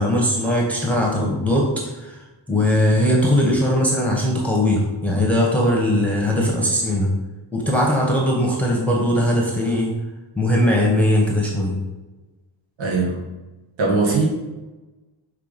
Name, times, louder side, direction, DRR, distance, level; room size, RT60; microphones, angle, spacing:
voice 1, 0.0-7.1 7.5-9.9 10.4-11.8, left 1 dB, 5° left, -2 dB, 1.0 m, -20 dB
voice 2, 12.8-13.2 13.8-14.3, right 3 dB, 75° right, -3 dB, 1.5 m, -20 dB
5.8 x 3.3 x 5.1 m, 1.1 s
wide cardioid pair, 110°, 46 cm